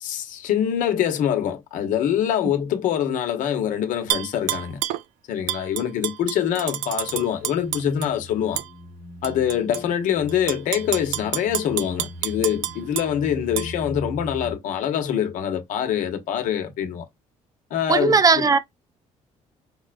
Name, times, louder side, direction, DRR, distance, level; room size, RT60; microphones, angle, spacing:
voice 1, 0.0-4.8 5.3-8.6 9.2-17.0 17.7-18.5, left 9 dB, 75° left, 1.1 m, -24 dB
Tap / Glass, 4.1-5.0 5.5-8.1 8.6-8.7 9.2-9.8 10.3-13.1 13.6-13.7, right 14 dB, 90° right, 0.4 m, -28 dB
sound 1, 7.0-14.6, equal, 25° left, 0.7 m, -40 dB
voice 2, 17.9-18.6, right 5 dB, 25° right, 0.6 m, -17 dB
5.3 x 2.3 x 2.5 m
cardioid pair, 95°, 13 cm